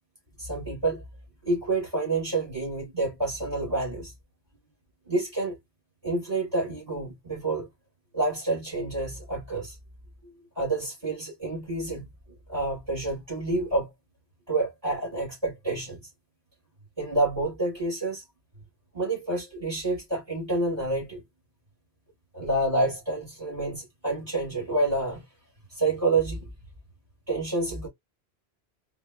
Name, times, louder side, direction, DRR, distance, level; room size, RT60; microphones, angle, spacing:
voice 1, 0.4-1.0 1.4-4.1 5.1-5.6 6.0-7.7 8.1-9.8 10.2-12.0 12.5-13.9 14.5-16.0 17.0-18.2 18.9-21.2 22.3-25.2 25.7-26.5 27.3-27.9, right 2 dB, 30° right, 3.2 m, -28 dB
4.7 x 2.3 x 3.2 m
omnidirectional pair, 1.1 m